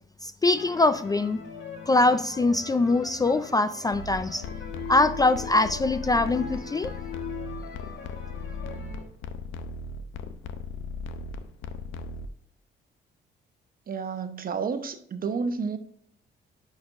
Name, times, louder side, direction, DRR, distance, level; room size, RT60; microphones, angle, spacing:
voice 1, 0.2-1.4 1.9-4.4 4.9-6.9, left 2 dB, 20° left, 0.3 m, -23 dB
sound 1, 0.5-9.0, left 7 dB, 70° left, 1.5 m, -41 dB
sound 2, 3.9-12.3, left 3 dB, 85° left, 0.7 m, -38 dB
voice 2, 13.9-15.8, right 5 dB, 45° right, 0.9 m, -30 dB
10.0 x 5.2 x 2.5 m
cardioid pair, 90°, 20 cm